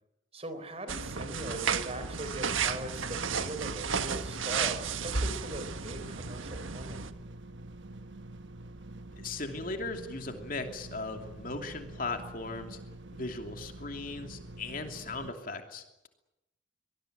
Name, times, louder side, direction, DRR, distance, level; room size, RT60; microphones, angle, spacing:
voice 1, 0.3-7.2, right 1 dB, 30° right, 10 dB, 3.8 m, -41 dB
sound 1, 0.9-7.1, right 6 dB, 80° right, 1.5 m, -33 dB
sound 2, 2.2-15.3, right 1 dB, 65° right, 1.1 m, -47 dB
voice 2, 9.2-12.8 13.1-16.1, left 3 dB, 45° left, 5 dB, 2.9 m, -38 dB
24.5 x 20.0 x 9.2 m, 0.90 s
head